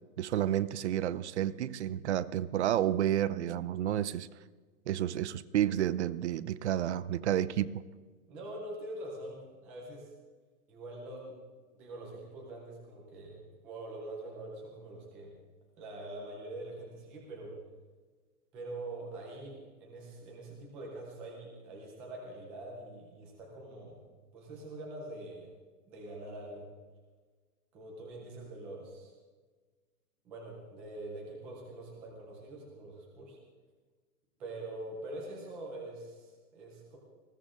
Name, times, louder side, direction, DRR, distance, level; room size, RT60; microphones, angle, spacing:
voice 1, 0.2-4.3 4.9-7.8, right 11 dB, 45° right, 17 dB, 0.7 m, -30 dB
voice 2, 8.3-10.1 10.7-11.4 11.7-13.4 13.6-15.3 15.8-17.6 18.5-24.0 24.3-25.5 25.9-26.7 27.7-29.1 30.2-33.4 34.4-37.0, right 2 dB, 5° right, -2 dB, 0.4 m, -44 dB
20.0 x 16.0 x 3.7 m, 1.4 s
hypercardioid pair, 150°, 47 cm